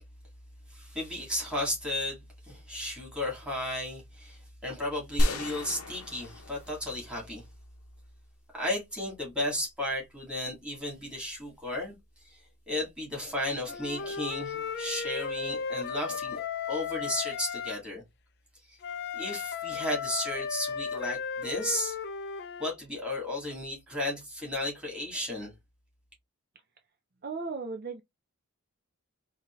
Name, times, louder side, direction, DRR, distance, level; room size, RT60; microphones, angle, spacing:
voice 1, 0.7-7.4 8.5-12.0 12.2-12.4 12.7-18.0 18.7-18.8 19.1-21.9 22.6-25.5, left 1 dB, 5° right, 2.1 m, -34 dB
sound 1, 5.2-7.5, equal, 80° left, 0.8 m, -31 dB
Wind instrument woodwind instrument, 13.7-17.8 18.8-22.7, left 6 dB, 50° left, 0.4 m, -35 dB
voice 2, 27.2-28.0, right 4 dB, 40° right, 0.5 m, -36 dB
4.2 x 2.7 x 3.1 m
head